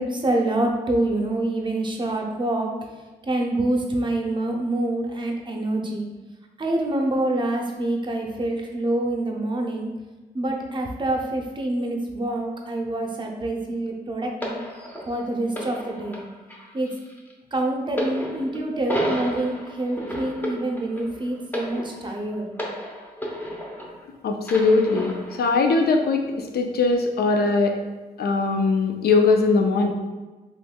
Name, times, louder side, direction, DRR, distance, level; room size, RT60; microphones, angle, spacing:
voice 1, 0.0-2.7 3.2-6.1 6.6-9.9 10.3-14.6 15.1-16.2 16.7-16.9 17.5-22.5, right 1 dB, 30° right, 1 dB, 0.6 m, -26 dB
sound 1, 14.4-24.1 24.4-25.5 26.3-26.4, equal, 10° left, 0.7 m, -33 dB
voice 2, 24.2-27.8 28.2-29.9, left 3 dB, 75° left, 4 dB, 0.5 m, -20 dB
3.5 x 3.0 x 2.2 m, 1.3 s
cardioid pair, 70°, 17 cm